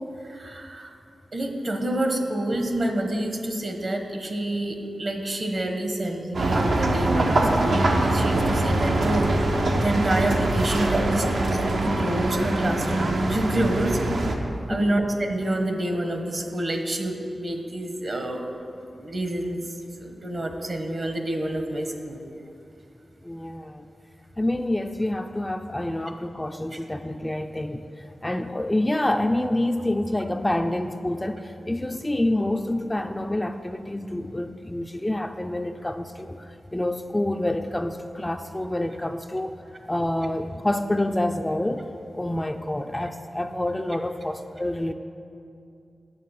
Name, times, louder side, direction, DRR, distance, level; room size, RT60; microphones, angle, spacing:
voice 1, 0.2-0.9 1.3-9.3 9.8-14.0 14.7-18.4 19.0-19.6 20.0-22.2, right 1 dB, 50° right, 4 dB, 1.1 m, -27 dB
sound 1, 6.3-14.4, right 2 dB, 75° right, 0.9 m, -23 dB
voice 2, 14.7-15.0 23.2-23.9 24.4-39.6 39.9-41.9 42.1-44.9, left 1 dB, 15° left, 6 dB, 0.4 m, -27 dB
9.3 x 6.5 x 5.7 m, 2.6 s
cardioid pair, 70°, 0 cm